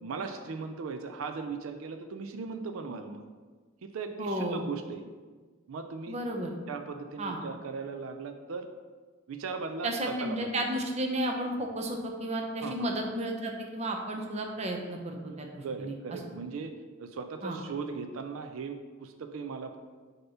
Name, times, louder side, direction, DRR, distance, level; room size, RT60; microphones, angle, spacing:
voice 1, 0.0-3.2 3.8-5.0 5.7-6.2 6.7-8.7 9.3-10.7 12.6-12.9 15.3-16.7 17.0-19.8, right 4 dB, 80° right, 7 dB, 0.4 m, -38 dB
voice 2, 4.2-4.6 6.1-6.5 7.2-7.4 9.8-15.9 17.4-17.6, right 1 dB, 30° right, 2 dB, 0.7 m, -33 dB
6.6 x 2.9 x 5.5 m, 1.4 s
head